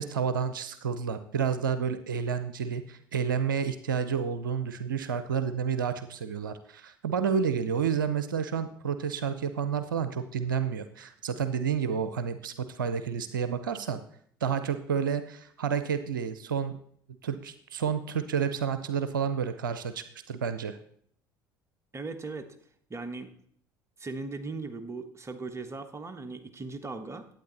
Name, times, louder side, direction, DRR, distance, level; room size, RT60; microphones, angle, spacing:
voice 1, 0.0-14.0 14.4-16.8 17.2-20.8, right 7 dB, 85° right, 11 dB, 0.5 m, -30 dB
voice 2, 21.9-22.5 22.9-23.3 24.0-27.3, right 3 dB, 25° right, 8 dB, 1.3 m, -38 dB
12.0 x 8.7 x 4.0 m, 0.64 s
hypercardioid pair, 60°, 11 cm